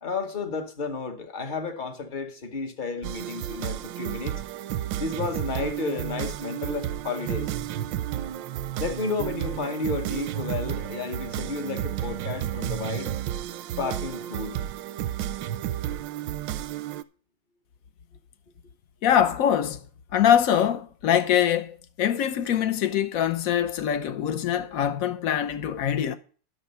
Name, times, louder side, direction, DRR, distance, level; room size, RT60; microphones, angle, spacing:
voice 1, 0.0-4.4 5.0-7.5 8.8-13.1 13.8-14.6, left 4 dB, 35° left, 0.8 m, -32 dB
sound 1, 3.0-17.0, right 11 dB, 75° right, 1.1 m, -32 dB
voice 2, 19.0-19.8 20.1-26.2, left 9 dB, 65° left, 0.8 m, -23 dB
11.0 x 6.7 x 5.5 m
omnidirectional pair, 2.4 m